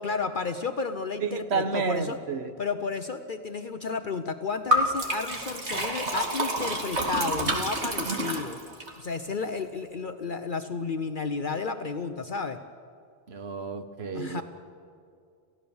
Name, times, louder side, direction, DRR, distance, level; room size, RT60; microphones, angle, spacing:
voice 1, 0.0-2.2 2.6-8.6 9.0-12.6 14.1-14.4, left 4 dB, 50° left, 7 dB, 1.0 m, -32 dB
voice 2, 1.2-2.5 13.3-14.4, right 4 dB, 70° right, 9 dB, 1.5 m, -30 dB
Liquid, 4.7-8.9, equal, 85° right, 2.7 m, -28 dB
28.5 x 16.0 x 7.1 m, 2.3 s
omnidirectional pair, 1.1 m